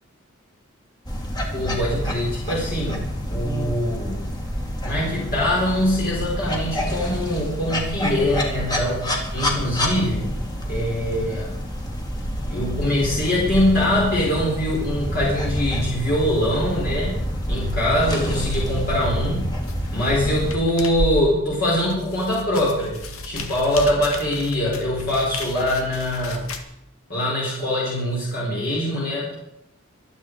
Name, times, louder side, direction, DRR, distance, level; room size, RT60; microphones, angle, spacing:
sound 1, 1.1-20.6, equal, 20° left, 2.5 m, -28 dB
voice 1, 1.5-4.3 4.8-10.3 10.7-11.6 12.5-17.2 17.5-19.6 19.9-26.5 27.1-29.3, left 1 dB, 45° left, -5 dB, 4.6 m, -23 dB
sound 2, 19.6-26.6, left 1 dB, 85° left, 1.9 m, -33 dB
24.5 x 8.8 x 4.8 m, 0.79 s
head